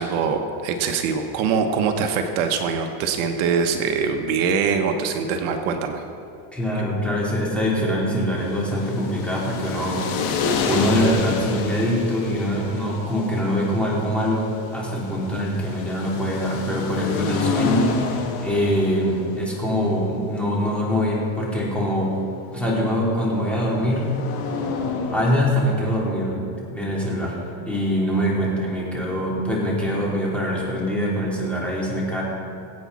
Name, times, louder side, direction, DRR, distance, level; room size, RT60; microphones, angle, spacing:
voice 1, 0.0-6.0, right 6 dB, 70° right, 5 dB, 1.2 m, -23 dB
voice 2, 6.5-10.1 10.6-22.2 22.5-24.1 25.1-27.4 27.7-32.2, equal, 5° left, -6 dB, 3.6 m, -23 dB
sound 1, 8.3-26.2, left 4 dB, 60° left, 2.3 m, -30 dB
22.0 x 8.5 x 4.2 m, 2.6 s
supercardioid pair, 130°, 42 cm